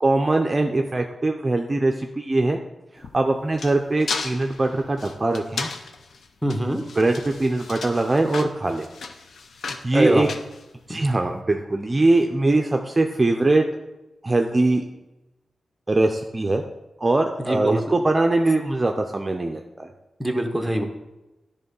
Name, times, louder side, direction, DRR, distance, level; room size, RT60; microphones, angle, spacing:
voice 1, 0.0-2.6 3.1-5.7 7.0-8.9 9.6-10.3 10.9-13.6 14.2-14.8 15.9-16.6 17.0-19.9, right 2 dB, 30° right, 3 dB, 0.5 m, -21 dB
sound 1, 3.0-11.2, left 4 dB, 75° left, 0.6 m, -35 dB
voice 2, 6.4-6.8 9.9-10.3 10.9-11.1 17.4-17.8 20.2-20.8, right 1 dB, 5° right, 5 dB, 0.9 m, -23 dB
10.5 x 3.5 x 5.4 m, 1.0 s
cardioid pair, 80°, 0 cm